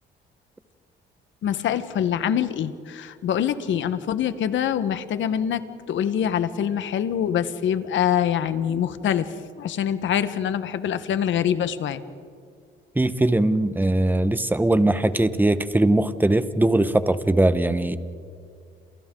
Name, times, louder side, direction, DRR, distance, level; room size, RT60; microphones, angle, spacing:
voice 1, 1.4-9.3 9.6-12.0, left 9 dB, 75° left, 12 dB, 1.3 m, -25 dB
voice 2, 12.9-18.0, right 1 dB, 10° right, 12 dB, 1.1 m, -20 dB
29.5 x 28.0 x 3.9 m, 2.2 s
cardioid pair, 90°, 20 cm